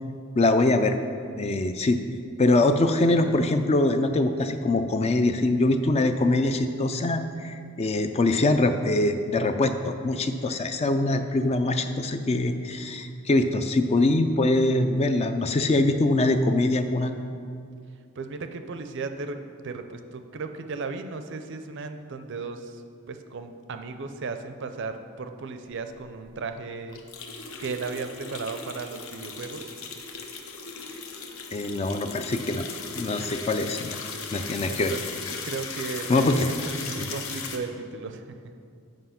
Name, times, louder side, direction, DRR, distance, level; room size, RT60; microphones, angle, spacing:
voice 1, 0.4-1.0 1.4-2.0 2.4-17.1 31.5-32.7 32.9-34.0 34.3-34.9 36.1-36.5 37.0-37.1, left 2 dB, 30° left, 8 dB, 0.3 m, -23 dB
voice 2, 18.2-22.8 23.1-27.0 27.6-29.6 33.2-33.4 34.7-38.2, right 4 dB, 55° right, 8 dB, 0.5 m, -35 dB
sound 1, 26.0-26.1 26.3-26.4 26.9-37.6, left 5 dB, 65° left, 0.8 m, -37 dB
7.8 x 5.3 x 5.8 m, 2.4 s
head